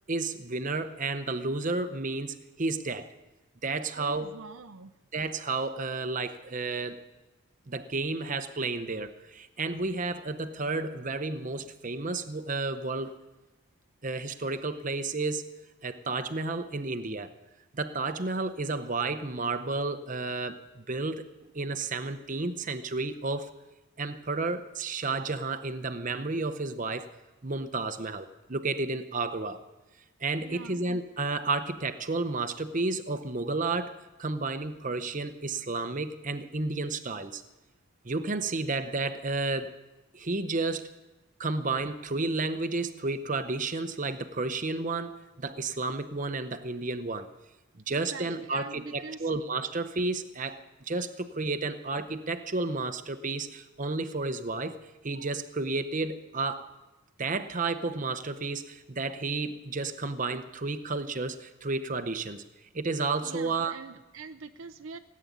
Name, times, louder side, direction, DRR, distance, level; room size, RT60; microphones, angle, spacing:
voice 1, 0.1-3.1 3.6-4.3 5.1-7.0 7.7-13.1 14.0-15.5 15.8-17.3 17.7-21.3 21.5-23.5 24.0-27.1 27.4-29.6 30.2-37.4 38.0-39.7 40.1-40.9 41.4-47.3 47.9-54.8 55.0-56.7 57.2-62.4 62.7-63.7, right 3 dB, 35° right, 9 dB, 0.8 m, -32 dB
voice 2, 3.9-4.9 30.4-30.8 47.9-49.3 63.2-65.0, right 4 dB, 70° right, 10 dB, 0.6 m, -44 dB
18.0 x 8.6 x 9.3 m, 1.0 s
head